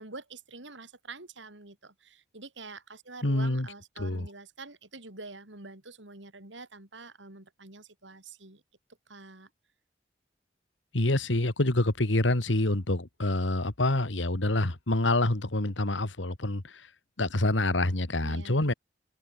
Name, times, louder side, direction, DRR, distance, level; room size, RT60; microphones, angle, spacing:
voice 1, 0.0-8.6 9.1-9.5 18.2-18.7, right 3 dB, 85° right, 4.4 m, -46 dB
voice 2, 3.2-3.7 4.0-4.3 10.9-16.8 17.2-18.7, left 2 dB, 90° left, 2.1 m, -27 dB
open air
head